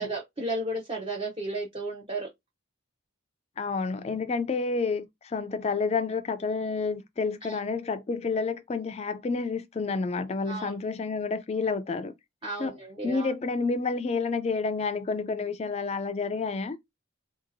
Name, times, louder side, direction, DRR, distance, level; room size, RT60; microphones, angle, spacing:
voice 1, 0.0-2.3 7.4-7.6 10.4-10.8 12.4-13.3, right 2 dB, 25° right, 0.6 m, -33 dB
voice 2, 3.6-12.1 12.6-12.8 13.0-16.8, left 4 dB, 30° left, 0.3 m, -29 dB
3.8 x 2.7 x 2.6 m
head